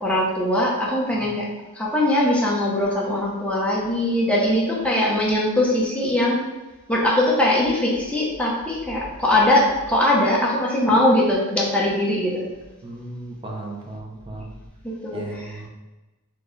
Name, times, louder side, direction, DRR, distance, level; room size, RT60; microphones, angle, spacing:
voice 1, 0.0-1.5 1.7-6.4 6.9-12.4 14.8-15.7, left 1 dB, 5° left, -4 dB, 0.8 m, -21 dB
voice 2, 12.8-14.5 15.1-15.7, right 2 dB, 25° right, -1 dB, 0.6 m, -35 dB
4.3 x 3.0 x 3.2 m, 1.1 s
head